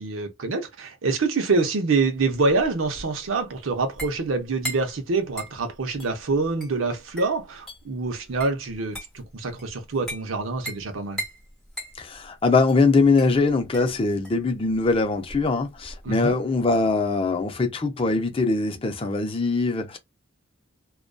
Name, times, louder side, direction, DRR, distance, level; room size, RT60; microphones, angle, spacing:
voice 1, 0.0-11.2 16.0-16.3, right 3 dB, 80° right, 0.7 m, -26 dB
sound 1, 2.2-16.1, right 1 dB, ahead, 1.1 m, -40 dB
voice 2, 12.0-20.0, left 3 dB, 30° left, 0.4 m, -22 dB
2.5 x 2.2 x 2.2 m
head